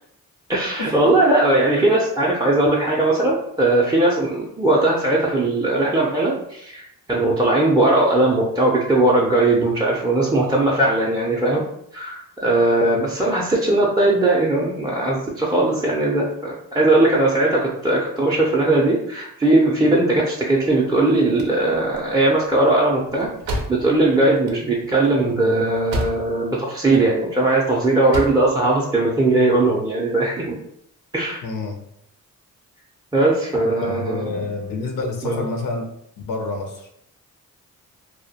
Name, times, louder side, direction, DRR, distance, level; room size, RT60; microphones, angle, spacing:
voice 1, 0.5-11.6 11.9-30.6 31.1-31.4 33.1-34.5 35.2-35.4, right 2 dB, 10° right, -5 dB, 0.4 m, -19 dB
sound 1, 21.2-26.5 26.8-27.6 27.9-28.5, right 1 dB, 85° right, 0.5 m, -31 dB
voice 2, 31.4-31.8 33.9-35.9 36.2-36.9, left 3 dB, 70° left, 3 dB, 0.5 m, -28 dB
2.2 x 2.1 x 2.7 m, 0.74 s
cardioid pair, 60°, 35 cm